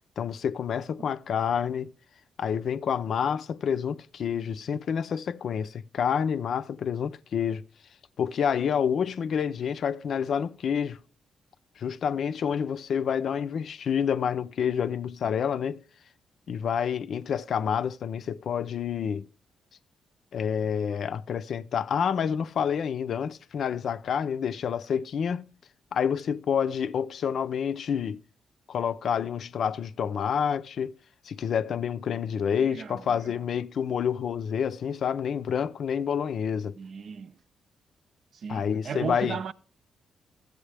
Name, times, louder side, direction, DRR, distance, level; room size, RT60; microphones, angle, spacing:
voice 1, 0.2-1.9 2.4-7.6 8.2-11.0 11.8-15.8 16.5-19.3 20.3-25.5 25.9-28.2 28.7-30.9 31.3-36.7 38.5-39.4, left 7 dB, 65° left, 0.5 m, -28 dB
voice 2, 32.6-33.4 36.8-37.3 38.3-39.5, right 6 dB, 60° right, 0.5 m, -36 dB
13.0 x 8.1 x 3.4 m
cardioid pair, 85°, 0 cm